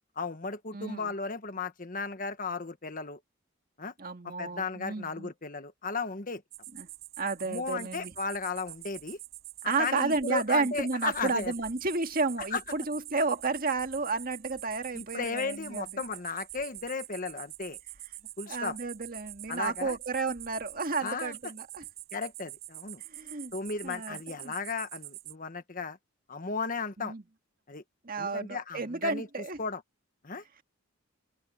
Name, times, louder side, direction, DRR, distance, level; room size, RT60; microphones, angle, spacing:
voice 1, 0.2-3.2 3.8-3.9 4.2-6.4 7.5-9.2 9.6-11.5 12.5-12.6 14.9-17.8 18.4-18.8 19.5-20.0 21.0-21.5 22.1-23.0 23.5-26.0 26.3-27.1 27.7-27.8 28.2-29.3 29.6-29.8 30.2-30.4, left 4 dB, 40° left, 1.4 m, -35 dB
voice 2, 0.7-1.1 4.0-5.3 6.7-6.9 7.2-8.1 9.7-16.0 18.5-21.8 23.1-23.5 23.8-24.5 27.0-27.2 28.0-29.6, right 3 dB, 45° right, 1.8 m, -32 dB
sound 1, 6.5-25.3, right 16 dB, 75° right, 6.2 m, -46 dB
open air
head